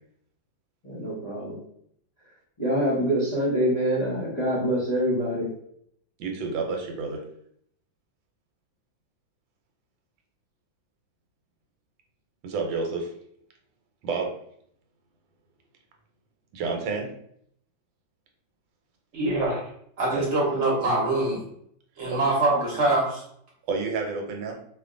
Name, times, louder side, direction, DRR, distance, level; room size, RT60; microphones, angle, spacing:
voice 1, 0.8-1.6 2.6-5.5, equal, 30° left, -8 dB, 0.8 m, -25 dB
voice 2, 6.2-7.2 12.4-13.1 14.0-14.3 16.5-17.1 20.1-20.3 22.1-22.2 23.7-24.5, right 4 dB, 85° right, 2 dB, 1.4 m, -29 dB
voice 3, 19.1-19.6 20.0-21.4 22.0-23.2, right 2 dB, 45° right, -4 dB, 1.1 m, -24 dB
2.8 x 2.5 x 3.7 m, 0.69 s
omnidirectional pair, 2.0 m